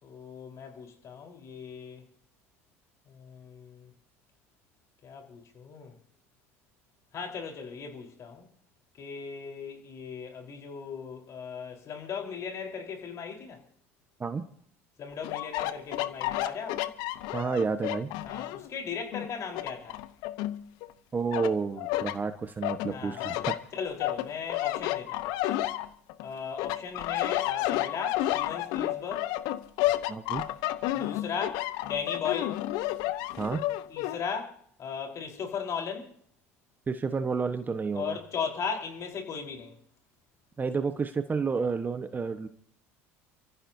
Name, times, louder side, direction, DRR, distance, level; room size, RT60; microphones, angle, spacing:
voice 1, 0.0-2.0 3.1-3.9 5.0-6.0 7.1-8.5 9.0-13.6 15.0-16.9 18.2-20.0 22.9-23.5 23.7-25.3 26.2-29.3 30.9-32.6 33.9-36.1 37.9-39.8, left 6 dB, 45° left, 4.3 m, -37 dB
sound 1, 15.2-18.7 19.1-20.9 21.3-22.2 22.6-26.2 26.6-34.2, left 15 dB, 65° left, 1.0 m, -31 dB
voice 2, 17.3-18.1 21.1-23.6 30.1-30.4 33.4-33.6 36.9-38.2 40.6-42.5, right 5 dB, 25° right, 1.3 m, -30 dB
30.0 x 14.5 x 2.8 m
hypercardioid pair, 75°, 7 cm